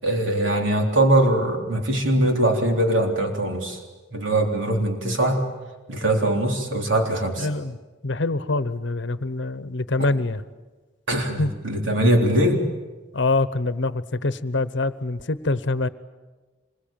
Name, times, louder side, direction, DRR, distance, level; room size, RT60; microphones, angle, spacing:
voice 1, 0.0-3.8 4.1-5.4 5.9-7.5 10.0-10.1 11.1-12.6, right 1 dB, 80° right, 2 dB, 3.7 m, -21 dB
voice 2, 7.4-7.8 8.0-10.4 11.4-11.5 13.1-15.9, left 2 dB, 70° left, 15 dB, 0.9 m, -25 dB
26.0 x 22.0 x 9.0 m, 1.3 s
head